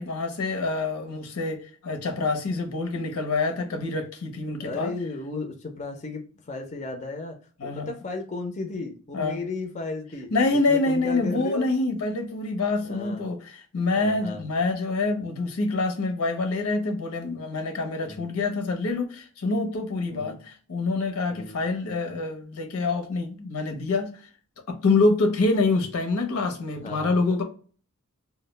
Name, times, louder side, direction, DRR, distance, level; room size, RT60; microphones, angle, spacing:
voice 1, 0.0-4.9 7.6-7.9 9.1-9.4 10.3-20.4 20.7-24.2 24.7-27.4, left 3 dB, 80° left, 0.6 m, -26 dB
voice 2, 4.6-7.4 7.6-10.3 10.7-11.7 12.1-12.2 12.8-13.2 13.9-14.4 18.0-18.3 20.1-20.4 21.3-21.6 26.7-27.3, left 3 dB, 30° left, 0.4 m, -35 dB
2.2 x 2.0 x 3.1 m
head